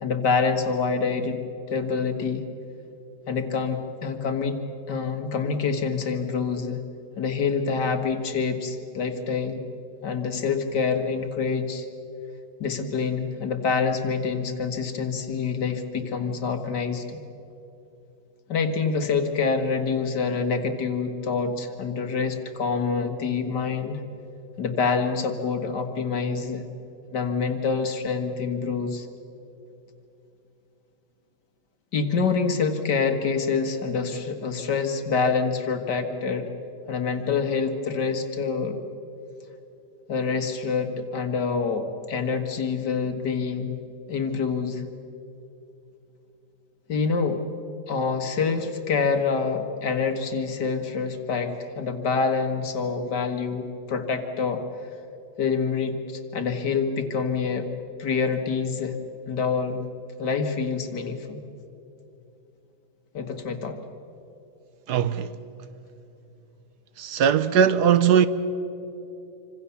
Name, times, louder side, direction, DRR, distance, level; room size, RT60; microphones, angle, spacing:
voice 1, 0.0-1.4 1.7-2.4 3.3-4.6 4.9-6.8 7.2-9.6 10.0-11.9 12.6-17.2 18.5-24.0 24.6-26.7 27.1-29.1 31.9-36.5 36.9-38.8 40.1-43.7 44.1-44.8 46.9-47.4 47.9-54.6 55.4-57.7 58.0-59.0 59.3-59.8 60.2-61.4 63.1-63.8, left 5 dB, 80° left, 2.3 m, -26 dB
voice 2, 64.9-65.3 67.0-68.3, right 8 dB, 75° right, 1.4 m, -19 dB
27.0 x 25.5 x 7.1 m
omnidirectional pair, 1.8 m